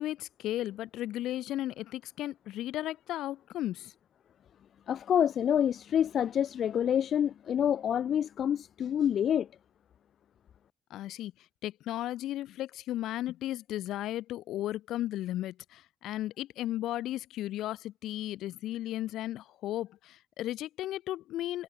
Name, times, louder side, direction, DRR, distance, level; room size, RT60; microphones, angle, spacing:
voice 1, 0.0-3.9 10.9-11.3 11.6-21.6, left 14 dB, 85° left, 1.8 m, -35 dB
voice 2, 4.9-9.5, left 9 dB, 65° left, 0.5 m, -27 dB
cardioid pair, 90°, 0 cm